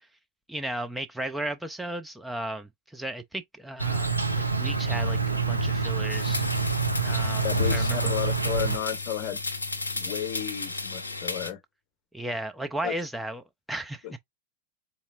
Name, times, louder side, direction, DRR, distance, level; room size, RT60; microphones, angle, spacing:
voice 1, 0.5-6.4 7.0-8.1 12.1-14.1, right 1 dB, 5° right, 0.5 m, -35 dB
Insect, 3.8-8.8, right 4 dB, 85° right, 0.6 m, -26 dB
sound 1, 6.1-11.5, left 3 dB, 75° left, 0.7 m, -34 dB
voice 2, 7.4-9.4 9.9-11.6 12.8-12.9 14.0-14.1, left 10 dB, 45° left, 0.8 m, -33 dB
4.1 x 3.4 x 2.4 m
figure-of-eight pair, 90°, 0 cm